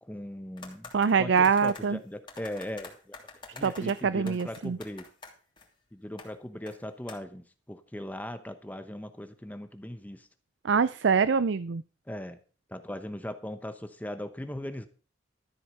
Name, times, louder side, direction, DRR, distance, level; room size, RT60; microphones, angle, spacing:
voice 1, 0.0-0.9 1.2-5.1 5.9-10.3 12.1-12.4 12.7-14.9, left 1 dB, 10° left, 9 dB, 0.9 m, -39 dB
sound 1, 0.6-1.9 2.3-5.7 6.2-6.3 6.6-6.8 7.1-7.2, left 3 dB, 25° left, 2.9 m, -47 dB
voice 2, 0.9-2.0 3.6-4.8 10.6-11.8, right 6 dB, 70° right, 16 dB, 0.5 m, -24 dB
13.5 x 8.0 x 5.4 m, 0.38 s
head